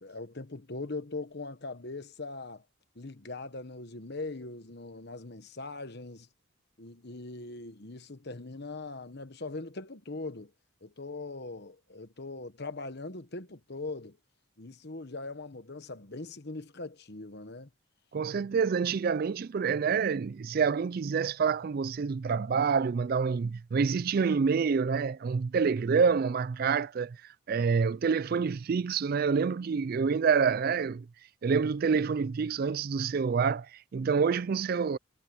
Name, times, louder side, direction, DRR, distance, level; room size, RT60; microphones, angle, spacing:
voice 1, 0.0-2.6 2.9-6.3 6.8-10.5 10.8-14.2 14.6-17.7, left 3 dB, 50° left, 1.2 m, -41 dB
voice 2, 18.1-31.1 31.4-35.0, right 5 dB, 45° right, 0.3 m, -27 dB
head